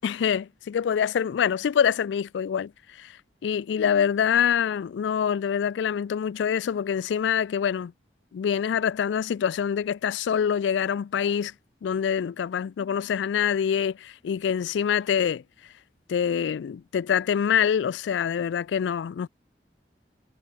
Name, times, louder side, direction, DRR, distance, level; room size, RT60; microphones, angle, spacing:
voice 1, 0.0-3.1 3.4-7.9 8.3-11.5 11.8-15.4 16.1-19.3, left 8 dB, 90° left, 0.3 m, -25 dB
head